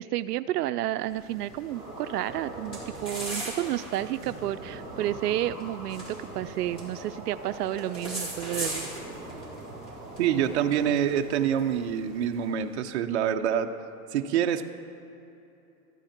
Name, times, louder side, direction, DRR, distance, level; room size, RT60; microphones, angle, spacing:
voice 1, 0.0-8.9, right 13 dB, 80° right, 12 dB, 0.5 m, -31 dB
sound 1, 1.0-12.8, right 1 dB, 10° left, 2.3 m, -41 dB
sound 2, 1.7-10.9, right 2 dB, 15° right, 3.4 m, -42 dB
voice 2, 10.2-13.7 14.1-14.7, right 9 dB, 45° right, 6 dB, 0.8 m, -26 dB
13.5 x 12.0 x 5.8 m, 2.9 s
supercardioid pair, 165°, 46 cm